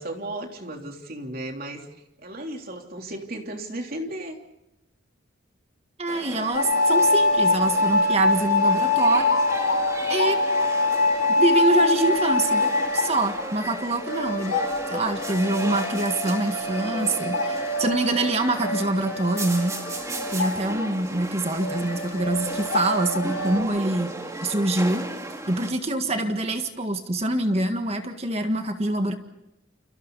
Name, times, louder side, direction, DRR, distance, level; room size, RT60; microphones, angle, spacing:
voice 1, 0.0-1.9 2.2-4.4 25.8-26.2, right 1 dB, 50° right, 3 dB, 3.4 m, -35 dB
voice 2, 6.0-9.3 10.1-10.4 11.3-12.6 12.9-14.6 14.9-19.7 20.3-24.1 24.4-25.1 25.5-29.1, right 2 dB, 30° right, 6 dB, 1.7 m, -25 dB
sound 1, 6.1-25.7, right 1 dB, 15° right, 2.3 m, -35 dB
sound 2, 6.5-20.9 21.2-21.3 21.6-23.6, left 2 dB, 85° left, 3.5 m, -24 dB
29.5 x 29.0 x 4.1 m, 0.88 s
head